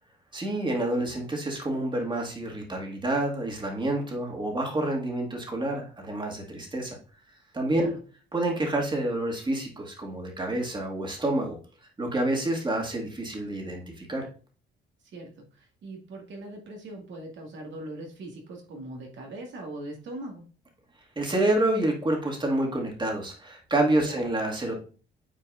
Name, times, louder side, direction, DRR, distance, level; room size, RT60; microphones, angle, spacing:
voice 1, 0.3-7.0 7.5-7.9 8.3-11.6 12.0-14.3 21.2-24.8, right 1 dB, 25° right, 0 dB, 1.9 m, -28 dB
voice 2, 15.1-20.4 24.0-24.2, right 1 dB, 70° right, 1 dB, 1.9 m, -41 dB
8.6 x 4.5 x 2.5 m, 0.38 s
cardioid pair, 90°, 20 cm